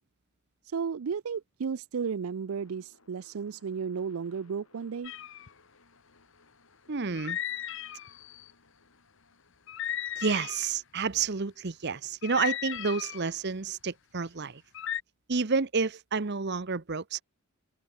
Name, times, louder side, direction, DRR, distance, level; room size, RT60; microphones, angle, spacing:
voice 1, 0.6-5.1, right 6 dB, 75° right, 0.4 m, -33 dB
sound 1, 2.0-14.1, left 3 dB, 75° left, 6.5 m, -65 dB
sound 2, 5.0-5.5 7.1-8.5 9.7-10.7 12.2-13.3 14.7-15.0, left 10 dB, 55° left, 0.7 m, -36 dB
voice 2, 6.9-7.4 10.2-14.6 15.3-17.2, right 4 dB, 50° right, 0.8 m, -30 dB
open air
head